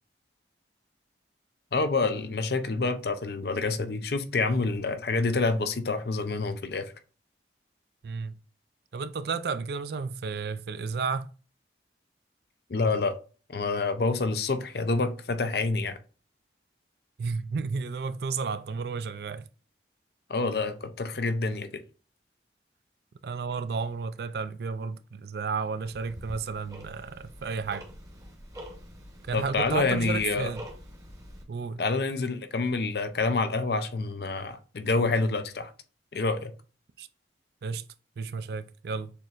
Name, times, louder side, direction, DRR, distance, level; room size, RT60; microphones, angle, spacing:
voice 1, 1.7-6.9 12.7-13.2 13.5-16.0 20.3-21.8 29.3-30.5 31.8-35.7 36.1-36.5, left 3 dB, 60° left, 0.5 m, -27 dB
voice 2, 8.0-8.4 8.9-11.3 17.2-19.5 23.2-27.8 29.3-30.6 31.5-31.8 37.0-37.1 37.6-37.8 38.2-39.1, right 5 dB, 60° right, 0.4 m, -32 dB
Tick-tock, 25.8-31.4, equal, 20° right, 0.9 m, -45 dB
6.7 x 3.0 x 2.4 m
head